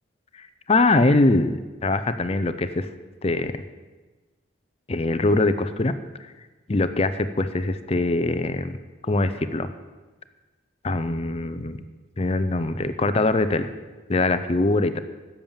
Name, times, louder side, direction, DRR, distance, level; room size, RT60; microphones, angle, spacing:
voice 1, 0.4-2.9 3.2-3.6 4.9-5.9 6.7-8.8 9.0-9.7 10.8-11.8 12.2-13.7 14.1-15.0, left 2 dB, 30° left, 12 dB, 0.5 m, -22 dB
10.5 x 7.1 x 7.2 m, 1.3 s
head